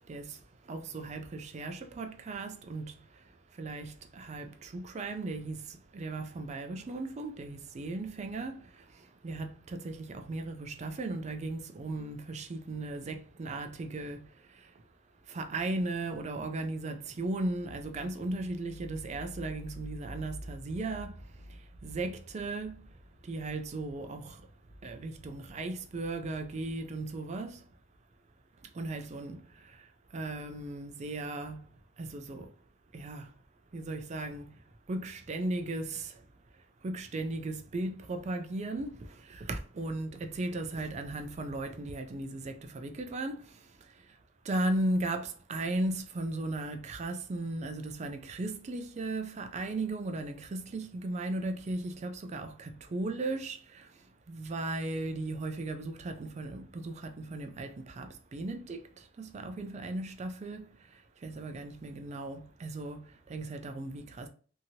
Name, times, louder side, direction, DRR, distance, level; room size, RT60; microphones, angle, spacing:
voice 1, 0.1-0.4 0.7-3.0 3.6-8.7 9.2-14.3 15.3-21.1 21.5-22.8 23.2-24.4 24.8-27.6 28.7-29.4 30.1-31.6 32.0-32.5 32.9-33.3 33.7-34.5 34.9-36.2 36.8-43.5 44.4-53.9 54.3-60.7 61.2-64.3, right 2 dB, 35° right, 0.4 m, -36 dB
2.8 x 2.8 x 2.7 m
head